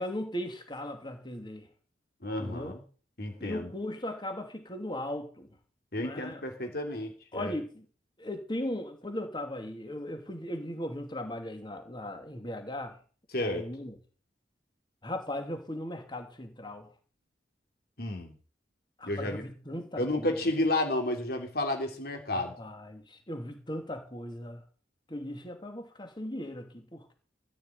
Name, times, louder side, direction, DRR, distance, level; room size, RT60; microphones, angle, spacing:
voice 1, 0.0-1.7 2.4-2.7 3.4-5.5 5.9-6.4 7.3-7.8 8.2-13.0 13.4-14.0 15.0-16.9 19.0-20.4 22.3-24.6 25.1-27.1, left 1 dB, 25° left, 2.8 m, -38 dB
voice 2, 2.2-2.8 3.2-3.7 5.9-7.5 13.3-13.6 18.0-18.3 19.0-19.4 20.0-22.5, left 1 dB, 60° left, 3.2 m, -31 dB
14.5 x 6.2 x 9.4 m
head